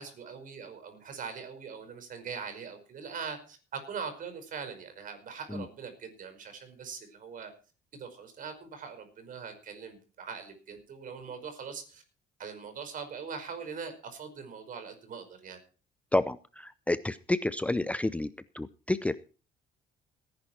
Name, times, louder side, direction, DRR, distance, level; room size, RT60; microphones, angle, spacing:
voice 1, 0.0-7.5 7.9-12.0 12.4-15.6, right 6 dB, 55° right, 8 dB, 5.2 m, -42 dB
voice 2, 16.9-18.3 18.6-19.1, left 2 dB, 10° left, 14 dB, 0.6 m, -28 dB
18.5 x 10.5 x 4.4 m, 0.38 s
cardioid pair, 110°, 17 cm